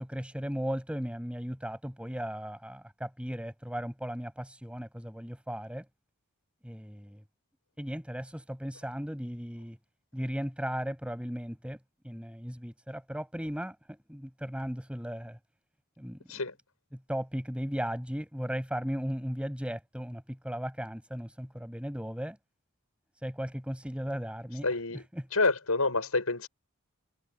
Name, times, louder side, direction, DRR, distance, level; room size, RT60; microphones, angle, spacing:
voice 1, 0.0-5.8 6.6-7.2 7.8-9.8 10.1-11.8 12.0-15.4 16.0-16.2 17.1-22.4 23.2-24.7 25.1-25.2, equal, 5° right, 7.2 m, -36 dB
voice 2, 24.6-25.0 25.3-26.5, left 3 dB, 80° left, 6.9 m, -28 dB
head